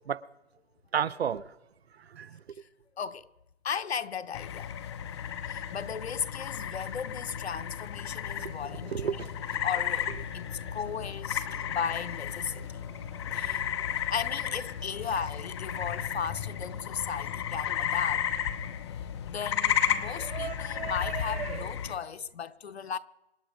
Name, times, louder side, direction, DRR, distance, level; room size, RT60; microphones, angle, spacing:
voice 1, 0.9-1.6 1.9-2.4 8.4-10.9 11.5-12.0 12.5-13.9 14.2-14.6 15.0-15.2 15.7-15.9 20.1-21.7, right 8 dB, 75° right, 0.8 m, -37 dB
voice 2, 3.0-3.3 3.6-4.7 5.5-9.1 9.6-12.8 13.3-13.6 14.1-18.3 19.3-23.0, left 7 dB, 80° left, 1.0 m, -36 dB
sound 1, 4.3-21.9, left 9 dB, 25° left, 0.9 m, -33 dB
26.0 x 10.5 x 5.1 m
hypercardioid pair, 160°, 32 cm